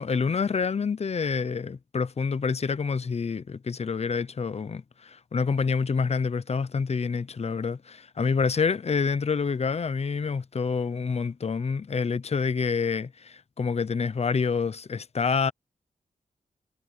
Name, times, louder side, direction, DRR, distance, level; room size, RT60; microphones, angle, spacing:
voice 1, 0.0-15.5, left 5 dB, 45° left, 0.8 m, -27 dB
wide cardioid pair, 105°, 15 cm